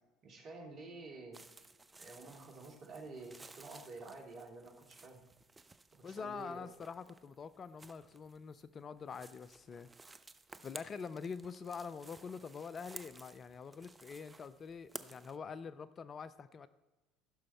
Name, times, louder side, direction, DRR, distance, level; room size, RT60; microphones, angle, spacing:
voice 1, 0.2-1.4 2.0-5.2 5.9-6.7, right 3 dB, 45° right, 1 dB, 2.5 m, -50 dB
sound 1, 1.3-15.4, right 3 dB, 20° right, 0.6 m, -56 dB
voice 2, 6.0-9.9 10.6-16.7, left 5 dB, 35° left, 14 dB, 0.5 m, -45 dB
15.0 x 6.3 x 4.3 m, 1.2 s
figure-of-eight pair, 65°, 0 cm